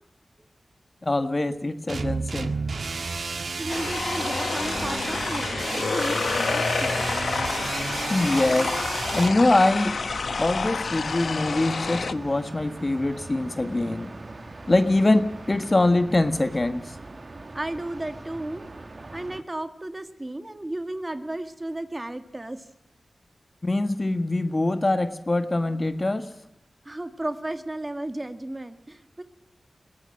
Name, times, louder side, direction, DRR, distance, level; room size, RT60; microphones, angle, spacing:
voice 1, 1.0-2.5 8.1-8.7 9.1-10.0 10.4-14.1 14.7-16.8 23.6-26.3, left 2 dB, 35° left, 10 dB, 1.6 m, -23 dB
sound 1, 1.9-9.3, right 4 dB, 75° right, 1.7 m, -31 dB
voice 2, 3.3-7.2 17.5-18.7 19.1-22.7 26.9-29.2, right 1 dB, 25° right, 9 dB, 2.0 m, -34 dB
sound 2, 3.7-12.1, left 4 dB, 80° left, 0.9 m, -29 dB
sound 3, 6.8-19.4, right 2 dB, 45° right, 1.9 m, -41 dB
22.0 x 18.0 x 7.6 m, 0.85 s
wide cardioid pair, 65°, 0 cm